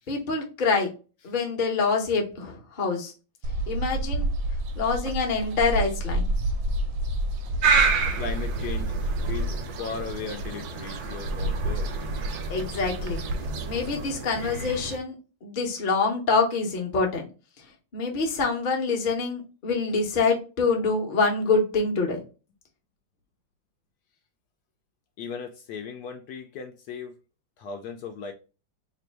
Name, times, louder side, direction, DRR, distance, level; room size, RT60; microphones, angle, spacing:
voice 1, 0.1-0.9 1.2-3.1 3.7-4.3 4.8-6.3 12.5-13.2 13.7-15.1 15.4-17.3 17.9-22.2, left 4 dB, 40° left, 0.7 m, -25 dB
sound 1, 3.4-14.0, right 1 dB, 85° right, 1.3 m, -30 dB
sound 2, 7.6-15.0, right 5 dB, 65° right, 1.2 m, -30 dB
voice 2, 8.2-8.9 9.3-11.9 25.2-27.1 27.6-28.3, left 5 dB, 75° left, 1.0 m, -37 dB
3.2 x 2.5 x 4.4 m
omnidirectional pair, 2.0 m